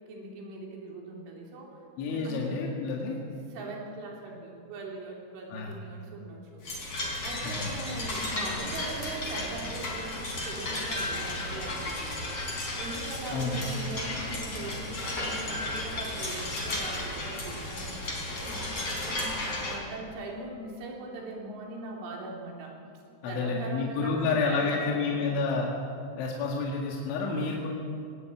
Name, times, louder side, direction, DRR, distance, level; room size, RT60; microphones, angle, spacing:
voice 1, 0.1-1.8 2.1-2.6 3.5-6.6 7.2-12.0 12.8-22.8 23.3-25.3, right 2 dB, 80° right, -1 dB, 5.9 m, -41 dB
voice 2, 2.0-3.2 5.5-5.7 7.4-7.8 13.3-13.6 23.2-25.7 26.2-27.7, left 4 dB, 75° left, -1 dB, 4.3 m, -29 dB
sound 1, 6.6-19.7, left 2 dB, 30° left, 4.8 m, -34 dB
19.5 x 18.5 x 9.0 m, 2.5 s
omnidirectional pair, 5.5 m